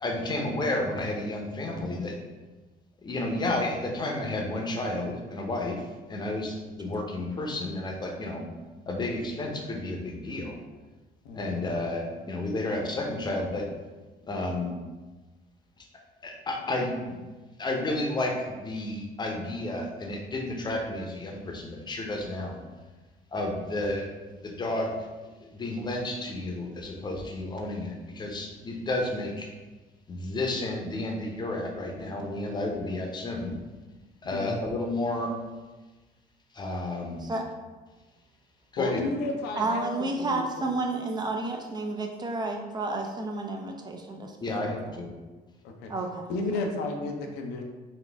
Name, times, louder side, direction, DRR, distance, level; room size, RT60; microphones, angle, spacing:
voice 1, 0.0-2.2 3.0-5.8 6.1-8.4 8.9-10.6 11.3-13.6 14.2-14.7 16.2-17.1 17.6-22.6 23.3-24.1 24.3-24.9 25.4-29.5 30.1-33.6 34.2-35.3 36.5-37.2 38.7-39.0 44.4-45.1, left 2 dB, 25° left, 1 dB, 0.7 m, -31 dB
voice 2, 11.2-11.7 34.2-34.6 38.8-40.7 45.6-45.9 46.3-47.6, left 2 dB, 90° left, 2 dB, 0.6 m, -32 dB
voice 3, 39.6-45.0 45.9-46.3, right 2 dB, 25° right, 2 dB, 0.4 m, -31 dB
4.1 x 2.4 x 3.4 m, 1.2 s
cardioid pair, 110°, 17 cm